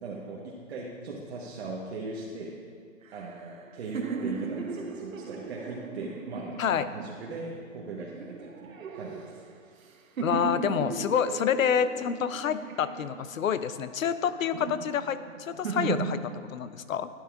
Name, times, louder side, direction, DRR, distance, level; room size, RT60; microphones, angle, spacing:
voice 1, 0.0-2.6 3.1-9.3 9.6-9.8, right 3 dB, 55° right, -4 dB, 1.2 m, -39 dB
sound 1, 3.1-7.4 8.0-9.9 10.2-13.5 14.1-16.1, right 5 dB, 85° right, 0.9 m, -37 dB
voice 2, 10.2-17.1, left 8 dB, 90° left, 13 dB, 0.6 m, -28 dB
12.5 x 9.2 x 2.4 m, 2.2 s
hypercardioid pair, 155°, 39 cm